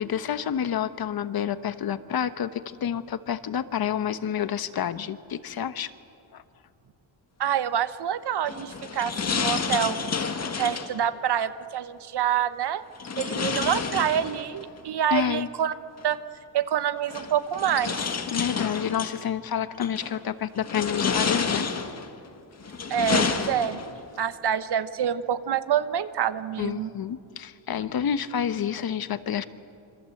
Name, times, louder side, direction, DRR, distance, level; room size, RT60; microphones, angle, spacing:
voice 1, 0.0-5.9 6.3-6.4 15.1-15.5 18.3-21.7 26.6-29.4, left 9 dB, 50° left, 12 dB, 1.1 m, -29 dB
voice 2, 7.4-10.3 10.6-12.8 13.2-15.7 16.0-16.2 16.5-18.0 22.9-23.8 24.2-26.9, right 9 dB, 55° right, 12 dB, 1.1 m, -27 dB
sound 1, 8.4-11.0 13.0-14.7 16.0-16.1 17.1-19.2 19.8-20.2 20.6-22.1 22.6-24.0, left 5 dB, 35° left, 1.8 m, -29 dB
27.0 x 25.0 x 7.8 m, 2.5 s
cardioid pair, 140°, 46 cm